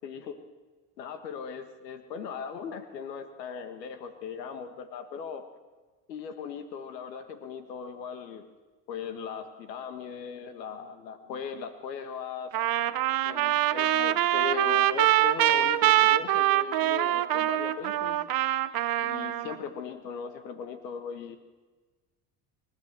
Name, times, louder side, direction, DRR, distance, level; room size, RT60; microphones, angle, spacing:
voice 1, 0.0-0.4 1.0-5.4 6.1-8.5 8.9-12.5 13.3-18.2 19.0-21.4, left 6 dB, 90° left, 9 dB, 1.7 m, -38 dB
Trumpet, 12.5-19.6, right 14 dB, 45° right, 1.0 m, -24 dB
28.0 x 12.5 x 7.5 m, 1.3 s
hypercardioid pair, 75°, 48 cm